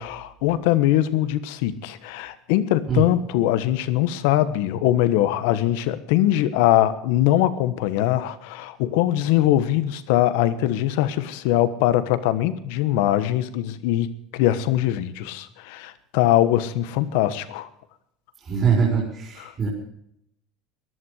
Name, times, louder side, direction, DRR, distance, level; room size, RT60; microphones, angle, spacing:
voice 1, 0.0-17.7, left 13 dB, 75° left, 13 dB, 1.3 m, -22 dB
voice 2, 18.4-19.7, right 6 dB, 35° right, -2 dB, 4.5 m, -22 dB
15.5 x 11.5 x 6.5 m, 0.75 s
supercardioid pair, 105°, 0 cm